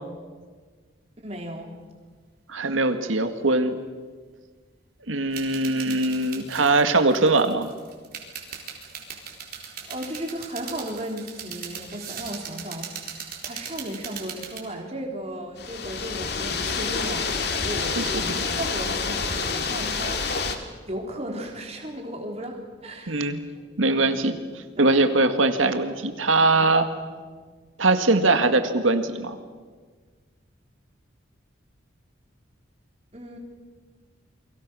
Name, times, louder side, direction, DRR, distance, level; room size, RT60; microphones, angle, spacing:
voice 1, 1.2-1.7 9.9-17.4 17.6-23.3 23.8-24.2 24.8-25.2 33.1-33.4, right 1 dB, 30° right, 2 dB, 3.6 m, -35 dB
voice 2, 2.5-3.8 5.1-7.7 18.0-18.4 23.1-23.4 23.8-24.4 24.8-26.9 27.8-29.4, right 2 dB, 85° right, 8 dB, 1.9 m, -21 dB
sound 1, 5.3-14.6, right 7 dB, 50° right, 4.2 m, -39 dB
sound 2, 15.6-20.6, left 4 dB, 55° left, 2.3 m, -28 dB
29.5 x 23.0 x 6.3 m, 1.5 s
head